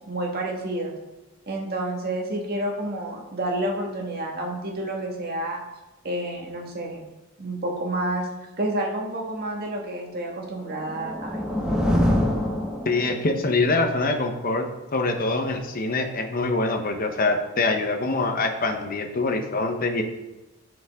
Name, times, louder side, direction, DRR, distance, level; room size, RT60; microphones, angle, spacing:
voice 1, 0.1-0.9 1.5-5.6 6.0-7.0 7.4-8.3 8.6-11.4, right 1 dB, 45° right, 0 dB, 1.6 m, -29 dB
sound 1, 10.6-13.4, left 1 dB, 5° right, 1.0 m, -25 dB
voice 2, 12.8-14.7 14.9-20.0, left 3 dB, 40° left, 5 dB, 0.9 m, -24 dB
11.5 x 5.2 x 3.6 m, 1.0 s
head